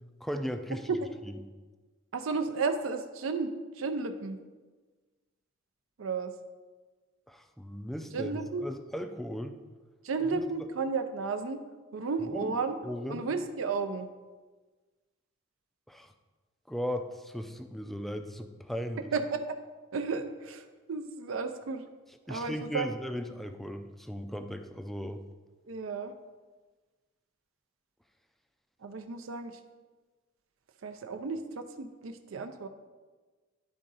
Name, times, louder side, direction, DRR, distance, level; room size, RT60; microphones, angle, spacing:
voice 1, 0.2-0.8 1.3-1.4 7.3-9.6 10.3-10.5 12.3-12.5 12.8-13.3 15.9-16.1 16.7-19.1 22.3-25.2, equal, ahead, 7 dB, 0.3 m, -37 dB
voice 2, 2.1-4.4 6.0-6.3 8.1-8.7 10.0-11.6 11.9-12.8 13.1-14.1 19.1-19.6 19.9-21.8 22.3-22.9 25.7-26.1 28.8-29.5 30.8-32.7, right 4 dB, 80° right, 7 dB, 0.5 m, -33 dB
10.5 x 3.8 x 3.9 m, 1.3 s
head